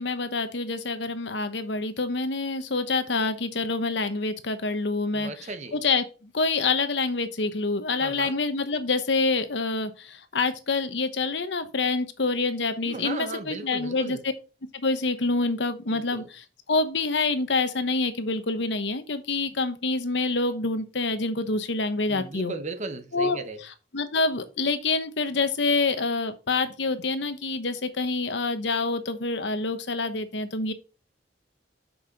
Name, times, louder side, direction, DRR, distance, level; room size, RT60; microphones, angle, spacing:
voice 1, 0.0-14.2 14.7-22.5 23.1-30.7, left 3 dB, 70° left, 1.0 m, -27 dB
voice 2, 5.1-5.8 8.0-8.3 12.8-14.2 15.9-16.3 22.1-23.6, right 3 dB, 40° right, 1.0 m, -36 dB
7.3 x 5.6 x 4.2 m
head